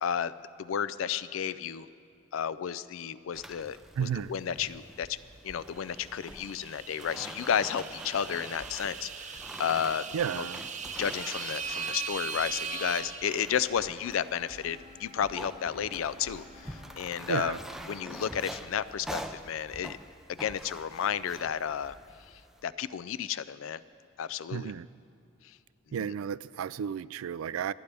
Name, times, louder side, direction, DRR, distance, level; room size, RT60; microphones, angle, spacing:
voice 1, 0.0-0.3 0.6-1.9 2.3-5.2 5.4-10.0 10.3-10.5 11.0-17.5 17.9-20.0 20.3-22.0 22.6-23.8 24.2-24.7 26.0-26.1, left 8 dB, 75° left, 16 dB, 0.4 m, -32 dB
sound 1, 3.3-22.6, right 1 dB, ahead, 0.4 m, -46 dB
voice 2, 4.0-4.3 10.1-10.6 17.3-17.6 24.5-24.9 25.9-27.7, right 8 dB, 85° right, 18 dB, 0.3 m, -32 dB
sound 2, 5.9-14.0, right 6 dB, 35° right, 0.7 m, -39 dB
sound 3, 14.0-18.1, left 4 dB, 30° left, 1.3 m, -54 dB
28.0 x 9.6 x 3.4 m, 2.6 s
head